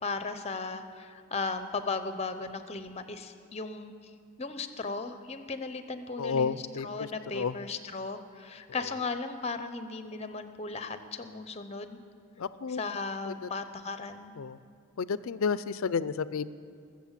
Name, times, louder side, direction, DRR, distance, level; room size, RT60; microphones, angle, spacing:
voice 1, 0.0-3.9 4.4-12.0 12.7-14.3, left 4 dB, 30° left, 10 dB, 0.7 m, -36 dB
voice 2, 6.2-7.1 7.3-7.5 12.4-12.8 13.3-13.4 14.4-14.6 15.0-16.5, left 5 dB, 65° left, 16 dB, 0.4 m, -31 dB
20.5 x 7.6 x 7.3 m, 2.3 s
head